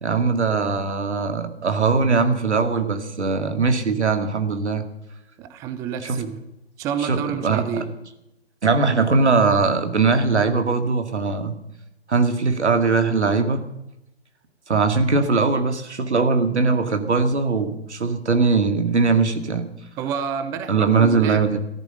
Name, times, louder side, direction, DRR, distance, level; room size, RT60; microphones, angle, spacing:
voice 1, 0.0-4.9 6.0-6.2 7.0-7.8 8.6-11.6 12.1-13.7 14.7-19.7 20.7-21.6, right 4 dB, 85° right, 8 dB, 2.2 m, -20 dB
voice 2, 5.4-6.4 6.8-7.9 20.0-21.6, right 7 dB, 10° right, 11 dB, 0.5 m, -29 dB
14.0 x 13.5 x 6.7 m, 0.88 s
hypercardioid pair, 135°, 33 cm